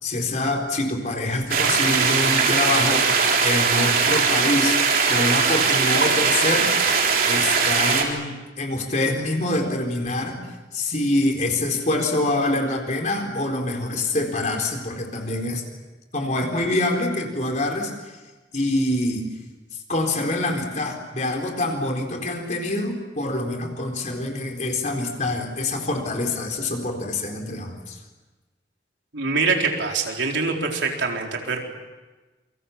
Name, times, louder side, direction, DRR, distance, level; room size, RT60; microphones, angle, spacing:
voice 1, 0.0-4.8 5.1-6.7 7.3-15.6 16.1-17.9 18.5-19.3 19.9-28.0, left 2 dB, 40° left, 2 dB, 4.3 m, -25 dB
sound 1, 1.5-8.0, right 5 dB, 50° right, 3.8 m, -20 dB
voice 2, 29.1-31.6, right 4 dB, 90° right, 1 dB, 4.2 m, -24 dB
28.0 x 25.0 x 7.3 m, 1.2 s
head